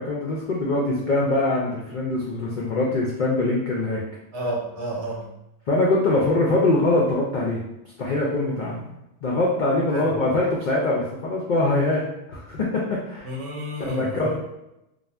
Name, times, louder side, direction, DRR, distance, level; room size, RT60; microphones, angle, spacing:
voice 1, 0.0-4.0 5.7-7.6 8.0-8.9 9.2-12.0 12.3-13.3 13.8-14.4, left 2 dB, 70° left, -4 dB, 0.4 m, -23 dB
voice 2, 4.3-5.3 9.9-10.2 13.2-14.4, right 1 dB, 60° right, -3 dB, 0.9 m, -31 dB
2.5 x 2.0 x 3.2 m, 0.86 s
omnidirectional pair, 1.3 m